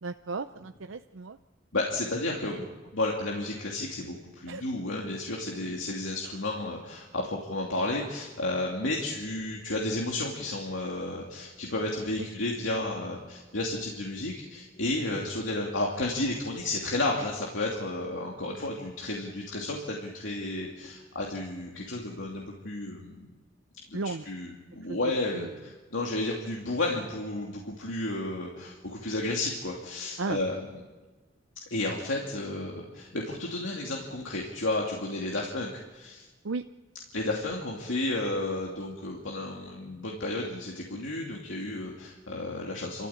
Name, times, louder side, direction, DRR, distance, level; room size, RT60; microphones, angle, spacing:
voice 1, 0.0-1.4 2.6-2.7 4.5-4.6 8.8-8.9 12.2-12.3 23.9-24.3 24.9-25.0 25.3-25.5 30.2-30.4 36.4-36.6, right 3 dB, 80° right, 8 dB, 0.6 m, -35 dB
voice 2, 1.7-2.6 2.9-23.3 23.9-24.0 24.3-30.8 31.7-36.3 37.1-43.1, left 2 dB, 75° left, -2 dB, 2.7 m, -32 dB
29.0 x 14.0 x 8.8 m, 1.3 s
head